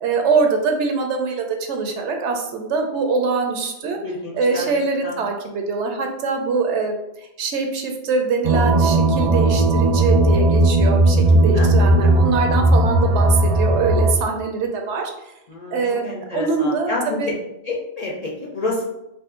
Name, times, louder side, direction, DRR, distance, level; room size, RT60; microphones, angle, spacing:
voice 1, 0.0-4.0 4.3-7.0 7.4-15.1 15.7-17.3, right 4 dB, 85° right, 4 dB, 0.9 m, -23 dB
voice 2, 4.0-4.7 5.0-5.2 11.5-11.7 15.5-17.2 17.6-18.8, left 2 dB, 45° left, -3 dB, 0.5 m, -29 dB
sound 1, 8.4-14.1, right 2 dB, 60° right, 0.4 m, -16 dB
2.6 x 2.4 x 3.6 m, 0.88 s
omnidirectional pair, 1.2 m